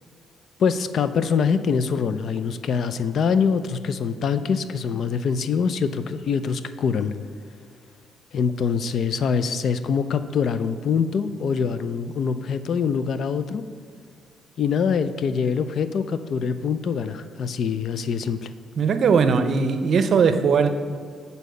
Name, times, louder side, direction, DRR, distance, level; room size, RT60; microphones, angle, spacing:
voice 1, 0.6-7.1 8.3-13.6 14.6-18.5, left 6 dB, 60° left, 12 dB, 0.4 m, -24 dB
voice 2, 18.8-20.7, right 5 dB, 55° right, 9 dB, 0.6 m, -19 dB
8.2 x 4.1 x 6.8 m, 2.2 s
cardioid pair, 90°, 0 cm